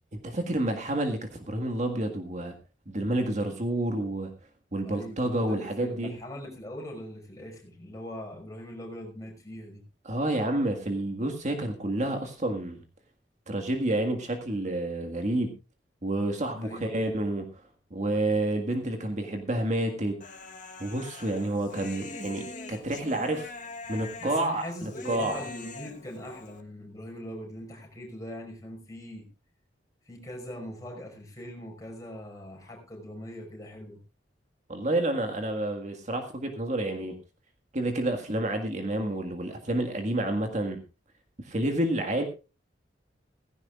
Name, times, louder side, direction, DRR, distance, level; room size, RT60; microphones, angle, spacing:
voice 1, 0.2-2.5 2.9-4.3 4.7-6.1 10.0-12.8 13.5-15.5 16.0-17.5 17.9-20.2 20.8-23.5 23.9-25.4 34.7-37.1 37.7-40.8 41.4-42.2, right 1 dB, 40° right, 5 dB, 1.7 m, -29 dB
voice 2, 4.8-9.8 16.6-17.1 24.2-29.3 30.0-34.0, equal, 20° left, 1 dB, 5.3 m, -41 dB
Human voice, 20.2-26.6, left 3 dB, 45° left, 1.2 m, -43 dB
17.0 x 16.0 x 2.4 m, 0.31 s
head